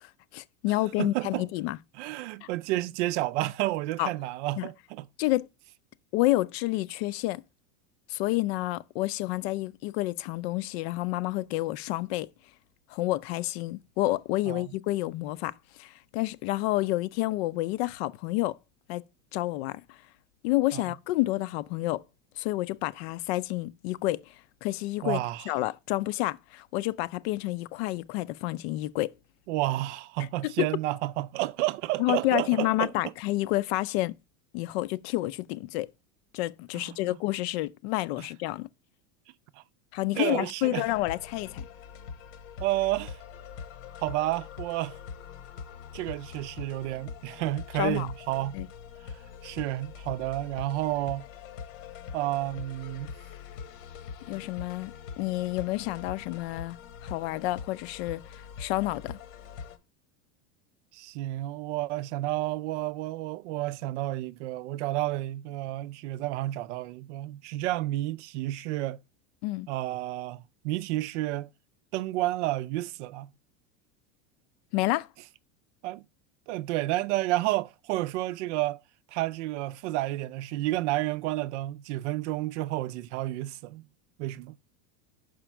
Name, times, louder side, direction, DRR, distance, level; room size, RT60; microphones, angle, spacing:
voice 1, 0.0-1.8 2.4-2.5 4.0-4.1 4.6-4.7 5.2-5.5 6.1-7.4 8.1-12.3 12.9-18.6 18.9-19.0 19.3-20.0 20.4-22.0 22.4-24.3 24.6-25.2 25.5-29.1 30.4-30.5 32.0-34.1 34.5-35.9 36.3-38.7 39.9-41.6 47.8-48.1 48.5-48.7 54.3-56.8 57.0-59.2 69.4-69.7 74.7-75.1, left 18 dB, 55° left, 0.5 m, -29 dB
voice 2, 1.0-1.5 1.9-5.1 14.4-14.7 20.7-20.8 25.0-25.5 29.5-32.9 36.7-37.1 38.2-38.3 39.6-39.7 40.2-40.9 42.6-43.2 44.0-45.0 45.9-48.6 49.0-49.2 49.4-51.3 52.1-53.1 60.9-69.0 69.7-71.5 71.9-73.3 75.8-76.0 76.5-78.8 79.1-83.9 84.2-84.6, right 16 dB, 70° right, 0.5 m, -31 dB
sound 1, 40.8-59.8, left 6 dB, 80° left, 1.2 m, -43 dB
6.1 x 5.1 x 4.4 m
supercardioid pair, 160°, 37 cm